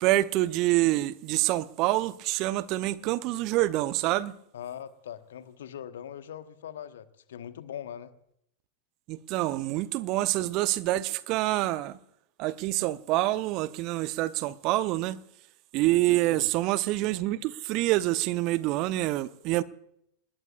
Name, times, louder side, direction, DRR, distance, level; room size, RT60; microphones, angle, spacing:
voice 1, 0.0-4.4 9.1-12.0 12.4-15.2 15.7-19.6, right 17 dB, 40° right, 0.7 m, -26 dB
voice 2, 4.5-8.1 16.4-16.5, left 9 dB, 60° left, 1.3 m, -41 dB
27.5 x 20.0 x 2.4 m
figure-of-eight pair, 90°, 0 cm